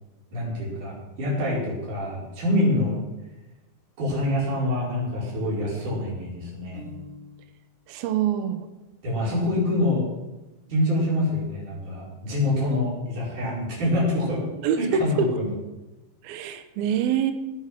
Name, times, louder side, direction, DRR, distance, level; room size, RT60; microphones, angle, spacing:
voice 1, 0.3-3.0 4.0-6.8 9.0-10.0 10.7-14.4 14.8-15.5, left 1 dB, 40° right, -5 dB, 6.0 m, -25 dB
Piano, 6.7-7.7, left 1 dB, 60° right, 7.6 m, -44 dB
voice 2, 7.9-8.7 14.6-15.3 16.2-17.3, right 7 dB, 85° right, 8 dB, 2.1 m, -25 dB
19.0 x 8.6 x 6.0 m, 1.0 s
omnidirectional pair, 5.8 m